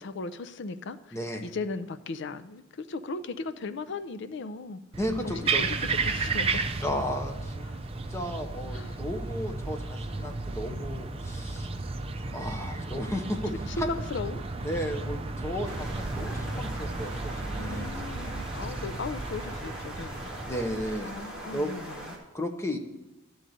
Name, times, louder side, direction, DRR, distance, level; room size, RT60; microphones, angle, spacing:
voice 1, 0.0-4.8 5.2-6.6 7.6-7.8 8.7-9.0 13.0-13.2 13.7-14.5 17.5-20.5 21.0-22.2, left 3 dB, 60° left, 11 dB, 0.5 m, -37 dB
voice 2, 1.1-1.5 5.0-5.6 6.8-7.7 8.1-11.7 12.3-14.0 14.6-17.9 20.5-21.1 21.5-21.7 22.3-22.8, equal, 15° left, 4 dB, 0.8 m, -34 dB
sound 1, 4.9-20.9, right 3 dB, 30° right, 0.5 m, -33 dB
sound 2, 15.6-22.2, right 1 dB, 5° right, 1.8 m, -40 dB
11.0 x 3.9 x 7.7 m, 1.0 s
head